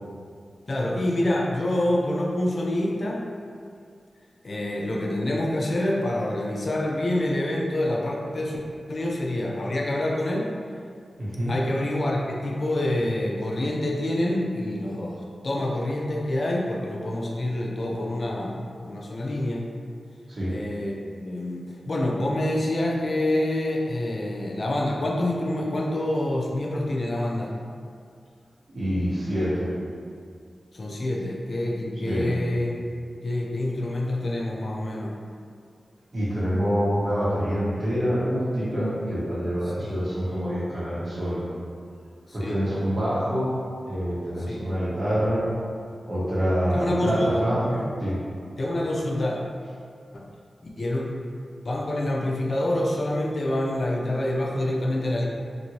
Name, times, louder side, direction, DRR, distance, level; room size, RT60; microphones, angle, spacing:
voice 1, 0.7-3.2 4.4-8.6 8.9-10.5 11.5-19.6 20.5-27.5 30.7-32.8 33.2-35.1 39.8-40.0 42.3-42.6 44.5-44.6 46.7-47.9 48.6-49.4 50.6-51.1 51.6-55.3, left 1 dB, 60° left, -2 dB, 0.5 m, -27 dB
voice 2, 11.2-11.5 20.3-20.5 28.7-29.7 32.0-32.3 36.1-41.4 42.3-43.5 43.8-45.4 46.0-47.6 48.0-48.2, equal, 55° right, -10 dB, 1.3 m, -26 dB
2.9 x 2.6 x 2.8 m, 2.2 s
cardioid pair, 40°, 0 cm